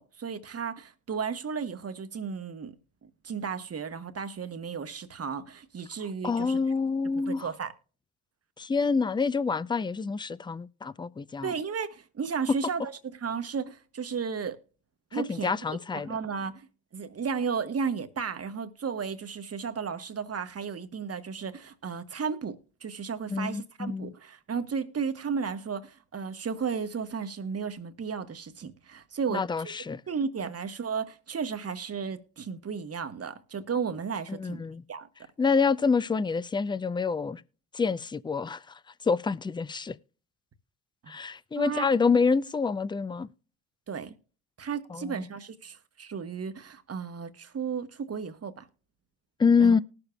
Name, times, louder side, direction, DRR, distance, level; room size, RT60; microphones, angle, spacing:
voice 1, 0.0-2.7 3.2-6.6 7.3-7.7 11.4-14.6 15.1-16.7 16.9-29.7 30.1-34.6 34.9-35.1 41.0-41.1 41.6-41.9 43.9-44.2 44.6-48.7 49.6-49.7, right 6 dB, 35° right, 1.1 m, -34 dB
voice 2, 6.2-7.5 8.6-11.5 15.1-16.2 23.3-24.1 29.3-30.0 34.3-34.8 35.4-37.4 37.7-40.0 41.1-43.3 44.9-45.2 49.4-49.8, left 5 dB, 10° left, 0.4 m, -27 dB
19.5 x 6.9 x 2.3 m
hypercardioid pair, 50°, 43 cm